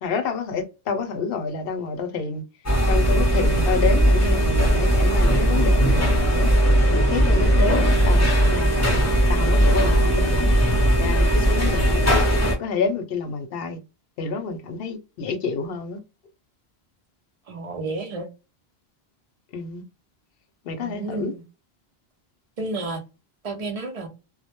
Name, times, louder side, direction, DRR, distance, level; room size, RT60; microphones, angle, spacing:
voice 1, 0.0-2.4 2.9-6.5 7.1-10.6 11.0-12.2 12.6-13.8 14.2-16.0 19.5-19.8 20.6-21.3, left 4 dB, 70° left, 0.7 m, -28 dB
sound 1, 2.7-12.6, equal, 20° left, 0.6 m, -18 dB
voice 2, 17.5-18.3 20.8-21.4 22.6-23.0 23.4-24.1, right 3 dB, 45° right, 0.5 m, -31 dB
2.1 x 2.1 x 2.8 m
omnidirectional pair, 1.1 m